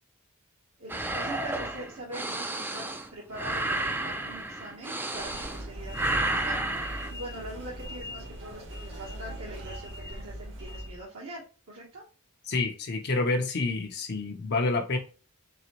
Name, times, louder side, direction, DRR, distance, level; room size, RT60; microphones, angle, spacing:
voice 1, 0.8-6.6 7.1-11.4 11.7-12.0, right 1 dB, 75° right, -5 dB, 1.3 m, -43 dB
sound 1, 0.9-5.7 5.9-7.1, right 2 dB, 10° right, 0.3 m, -31 dB
sound 2, 5.1-11.1, equal, 60° right, 1.1 m, -40 dB
voice 2, 12.5-15.0, left 3 dB, 50° left, 3 dB, 0.6 m, -28 dB
3.9 x 3.3 x 3.0 m, 0.34 s
head